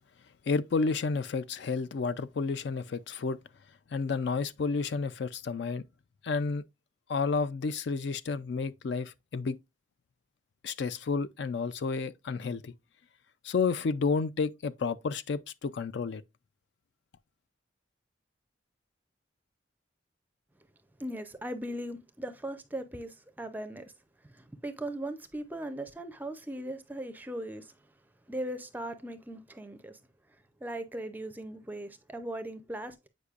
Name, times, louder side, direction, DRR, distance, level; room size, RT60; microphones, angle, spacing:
voice 1, 0.5-3.4 3.9-5.8 6.2-6.6 7.1-9.6 10.6-12.7 13.4-16.2, left 4 dB, 60° left, 0.4 m, -31 dB
voice 2, 21.0-23.9 24.3-27.7 28.3-30.0 30.6-33.1, right 1 dB, 10° right, 0.4 m, -39 dB
8.2 x 5.1 x 2.4 m
head